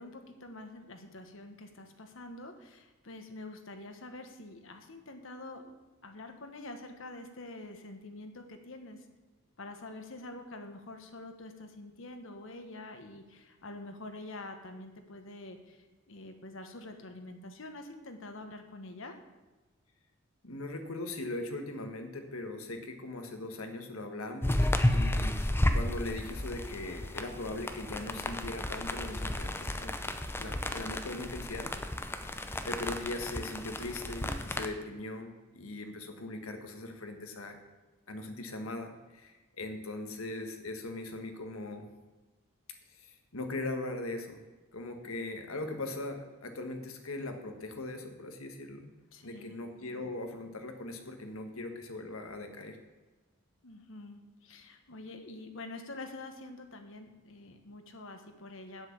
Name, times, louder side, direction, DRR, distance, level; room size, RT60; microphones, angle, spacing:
voice 1, 0.0-5.8 6.0-9.0 9.6-15.8 16.1-19.2 36.2-36.4 49.1-49.5 53.6-58.9, left 2 dB, 65° left, 6 dB, 1.2 m, -46 dB
voice 2, 20.4-25.4 25.7-31.7 32.6-37.6 38.1-41.9 42.9-44.4 44.7-48.9 49.2-52.8, left 2 dB, 85° left, 5 dB, 1.5 m, -40 dB
sound 1, 24.4-34.7, left 1 dB, 10° left, 0.6 m, -32 dB
7.9 x 7.4 x 7.2 m, 1.2 s
head